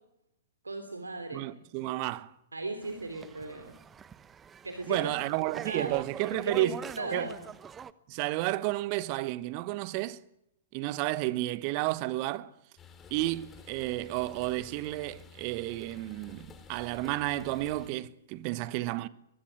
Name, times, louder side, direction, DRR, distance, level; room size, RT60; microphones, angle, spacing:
voice 1, 0.6-1.4 2.5-3.7 4.6-5.1 5.6-6.0 6.3-7.4, right 2 dB, 80° right, 3.4 m, -36 dB
voice 2, 1.3-2.3 4.9-6.8 7.1-7.3 8.1-10.2 10.7-12.5 13.1-19.1, right 18 dB, 40° right, 1.3 m, -32 dB
sound 1, 2.8-7.9, right 7 dB, 15° right, 1.0 m, -45 dB
sound 2, 12.8-17.9, left 6 dB, 20° left, 4.0 m, -52 dB
23.5 x 22.0 x 9.2 m
figure-of-eight pair, 105°, 0 cm